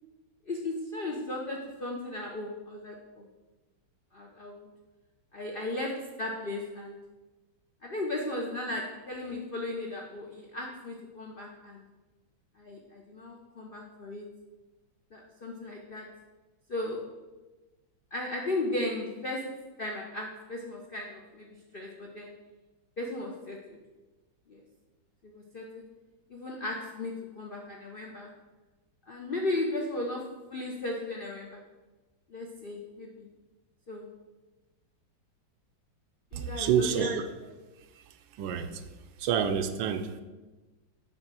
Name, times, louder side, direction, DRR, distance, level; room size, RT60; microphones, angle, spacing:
voice 1, 0.5-3.3 4.1-4.7 5.3-7.0 7.8-11.8 12.6-14.3 15.1-16.1 16.7-17.1 18.1-22.3 23.0-23.8 24.5-24.6 25.2-25.9 26.3-28.3 29.1-31.6 32.3-33.3 33.9-34.1 36.3-37.1, left 2 dB, 75° left, 0 dB, 0.5 m, -36 dB
voice 2, 36.3-37.2 38.0-38.1 38.3-38.8 39.2-40.2, right 8 dB, 85° right, 8 dB, 1.4 m, -28 dB
8.6 x 3.2 x 6.1 m, 1.2 s
omnidirectional pair, 2.0 m